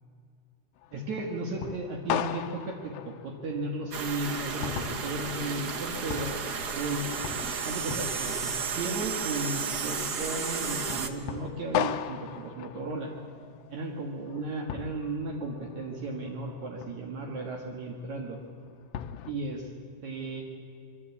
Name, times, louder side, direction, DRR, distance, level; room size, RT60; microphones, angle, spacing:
sound 1, 0.8-19.3, left 11 dB, 90° left, 2.6 m, -39 dB
voice 1, 0.9-7.1 7.6-13.1 13.7-18.4 19.3-19.7 20.0-20.4, right 2 dB, 60° right, 0 dB, 3.1 m, -35 dB
sound 2, 3.9-11.1, right 5 dB, 75° right, 0.9 m, -33 dB
26.0 x 23.0 x 8.5 m, 2.3 s
omnidirectional pair, 3.9 m